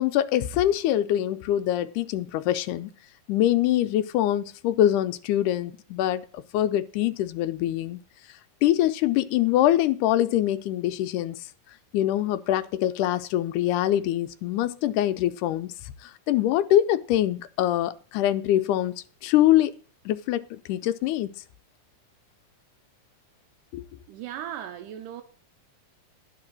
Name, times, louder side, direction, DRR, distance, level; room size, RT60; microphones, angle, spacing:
voice 1, 0.0-2.9 3.3-8.0 8.6-11.4 11.9-15.7 16.0-19.7 20.1-21.3 23.7-23.8, left 12 dB, 80° left, 2.1 m, -24 dB
voice 2, 24.1-25.2, right 10 dB, 85° right, 2.3 m, -37 dB
11.5 x 4.8 x 7.5 m
omnidirectional pair, 3.7 m